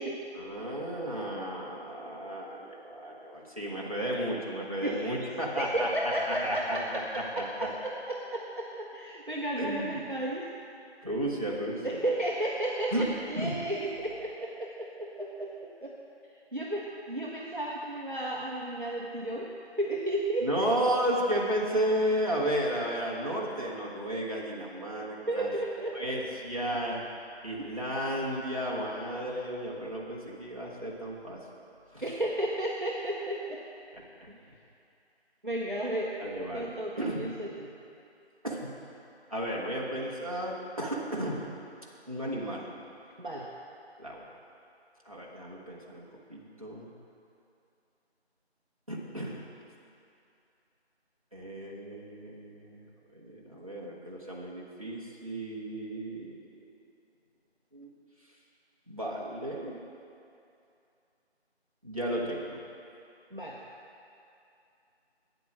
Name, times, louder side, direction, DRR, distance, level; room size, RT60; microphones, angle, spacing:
voice 1, 0.3-5.9 6.3-7.4 9.5-9.9 11.0-12.0 12.9-13.0 13.3-13.6 20.4-25.5 25.9-27.0 27.4-31.4 31.9-32.0 36.2-36.7 37.0-37.3 38.4-38.7 39.3-41.4 42.1-42.7 44.0-44.2 45.0-46.9 48.9-49.4 51.3-52.8 53.1-56.3 57.7-57.9 58.9-59.8 61.8-62.6, right 1 dB, 30° right, -5 dB, 1.3 m, -33 dB
voice 2, 4.8-5.1 5.6-10.5 11.8-16.0 16.5-19.5 19.8-20.5 25.3-26.0 27.6-27.7 32.0-33.6 34.3-34.4 35.4-36.2 36.5-37.7 43.2-43.5 63.3-63.6, right 1 dB, 50° right, -3 dB, 0.8 m, -33 dB
9.0 x 7.9 x 6.1 m, 2.6 s
figure-of-eight pair, 175°, 33 cm